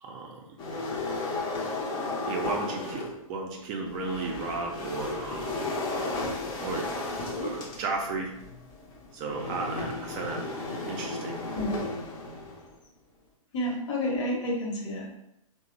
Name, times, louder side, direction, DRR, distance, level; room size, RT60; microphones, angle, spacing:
voice 1, 0.0-0.4 2.3-5.7 6.6-6.9 7.3-8.3 9.1-10.5 10.9-11.4, right 3 dB, 30° right, 1 dB, 0.4 m, -34 dB
sound 1, 0.6-3.2 3.9-12.7, left 2 dB, 25° left, 0.5 m, -34 dB
voice 2, 5.9-6.4 7.3-7.5 11.5-11.9 13.5-15.1, left 1 dB, 55° left, 0 dB, 0.9 m, -31 dB
2.7 x 2.0 x 2.5 m, 0.83 s
hypercardioid pair, 125°, 18 cm